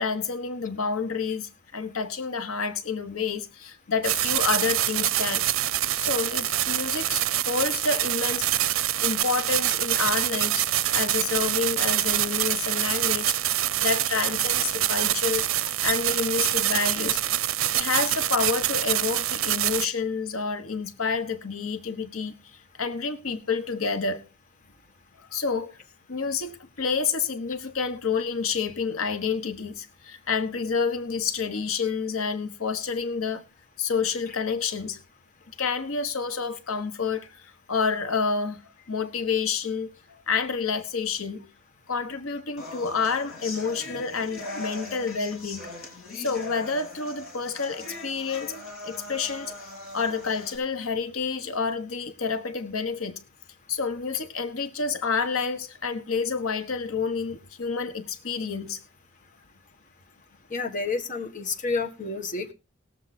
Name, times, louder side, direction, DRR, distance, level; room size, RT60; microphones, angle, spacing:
voice 1, 0.0-5.4 6.0-8.5 9.0-13.4 13.8-17.2 17.7-24.2 25.3-25.8 26.1-33.5 33.8-35.0 35.6-38.6 38.9-41.4 41.9-45.7 46.1-48.6 48.8-49.5 49.9-53.2 53.7-58.8, left 5 dB, 85° left, 1.2 m, -29 dB
sound 1, 4.0-19.9, right 13 dB, 70° right, 0.6 m, -25 dB
sound 2, 42.6-50.6, left 2 dB, 70° left, 4.5 m, -40 dB
voice 2, 60.5-62.5, left 3 dB, 40° left, 1.5 m, -29 dB
19.0 x 7.4 x 4.1 m
head